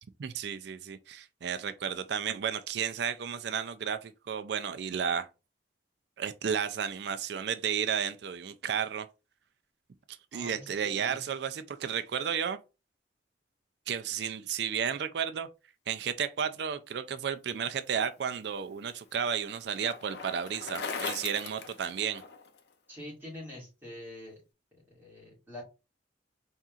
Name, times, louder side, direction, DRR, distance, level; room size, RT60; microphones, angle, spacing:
voice 1, 0.2-5.3 6.2-9.1 10.1-12.6 13.9-15.5 15.9-22.2, right 7 dB, 60° right, 0.4 m, -33 dB
voice 2, 10.3-11.2 22.9-24.4 24.8-25.6, left 1 dB, 10° right, 2.3 m, -45 dB
Bicycle, 18.2-22.6, left 5 dB, 60° left, 0.6 m, -40 dB
4.2 x 3.6 x 2.4 m
head